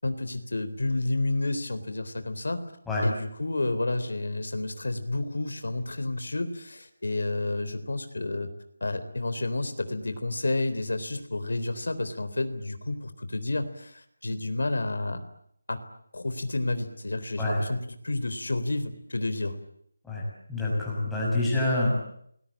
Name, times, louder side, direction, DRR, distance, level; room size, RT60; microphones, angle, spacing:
voice 1, 0.0-2.6 3.0-8.5 8.8-15.2 15.7-15.8 16.1-19.6, left 2 dB, 85° left, 10 dB, 3.9 m, -30 dB
voice 2, 20.5-22.0, left 2 dB, ahead, -6 dB, 6.2 m, -26 dB
29.5 x 21.0 x 8.8 m, 0.71 s
figure-of-eight pair, 175°, 0 cm